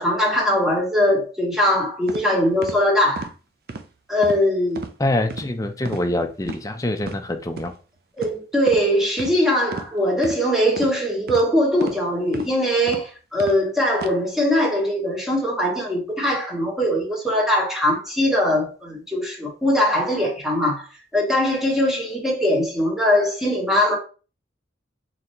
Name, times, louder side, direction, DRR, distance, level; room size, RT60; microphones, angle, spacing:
voice 1, 0.0-3.3 4.1-4.8 8.2-20.9 21.1-24.0, left 1 dB, ahead, 1.2 m, -21 dB
sound 1, 2.1-2.2 2.6-2.8 3.2-3.3 3.7-3.9 4.2-4.4 4.7-4.9 5.3-5.5 5.8-6.1 6.4-6.6 7.0-7.2 7.6-7.7 8.2-8.4 8.7-8.8 9.2-9.3 9.7-9.9 10.2-10.4 10.8-10.9 11.3-11.4 11.8-12.0 12.3-12.5 12.9-13.0 13.4-13.6 13.9-14.1, right 3 dB, 55° right, 0.5 m, -33 dB
voice 2, 5.0-7.7, left 1 dB, 20° left, 0.5 m, -25 dB
4.0 x 3.3 x 2.9 m
head